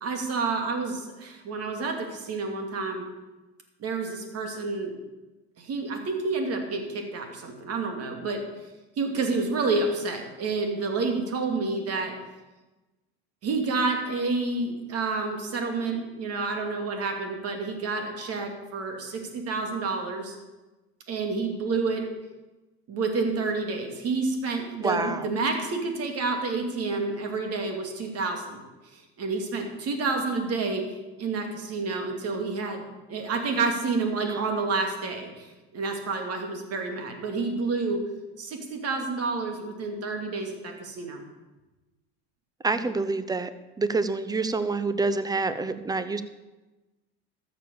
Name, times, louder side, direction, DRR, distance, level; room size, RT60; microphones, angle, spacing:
voice 1, 0.0-3.0 3.8-4.9 5.6-8.4 9.0-12.1 13.4-20.4 21.1-22.0 22.9-28.6 28.9-30.8 31.2-38.1 38.4-41.2 42.8-42.9, right 3 dB, 50° right, 4 dB, 2.7 m, -29 dB
voice 2, 24.8-25.3 34.2-34.4 42.6-43.5 43.8-46.2, right 3 dB, 10° right, 13 dB, 0.7 m, -27 dB
13.5 x 7.0 x 7.0 m, 1.1 s
supercardioid pair, 105°, 32 cm